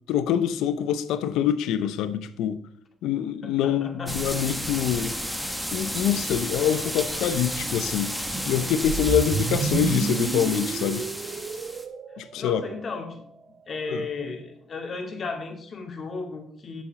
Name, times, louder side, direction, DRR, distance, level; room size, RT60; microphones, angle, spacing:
voice 1, 0.1-2.6 3.0-5.1 5.7-8.2 8.5-11.0 12.2-12.6 13.9-14.0, left 9 dB, 90° left, 0.6 m, -25 dB
voice 2, 3.4-4.2 12.1-13.3 13.7-16.8, left 4 dB, 45° left, 2.1 m, -35 dB
sound 1, 4.1-11.8, equal, ahead, 1.3 m, -32 dB
sound 2, 8.8-13.0, right 6 dB, 55° right, 0.5 m, -30 dB
7.7 x 7.1 x 5.2 m
cardioid pair, 90°, 0 cm